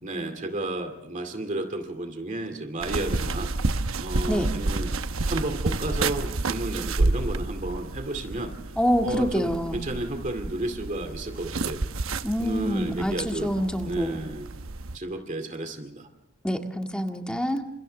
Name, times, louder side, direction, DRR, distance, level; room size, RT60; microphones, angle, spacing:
voice 1, 0.0-3.5 4.0-4.9 5.2-8.5 9.0-11.9 12.4-13.5 13.8-14.5 14.9-16.1, right 2 dB, 35° right, 5 dB, 2.3 m, -32 dB
sound 1, 2.8-15.0, right 3 dB, 80° right, 1.0 m, -30 dB
voice 2, 8.8-9.8 12.2-14.2 16.4-17.6, equal, 5° left, 3 dB, 1.9 m, -26 dB
29.5 x 27.5 x 3.4 m, 0.80 s
head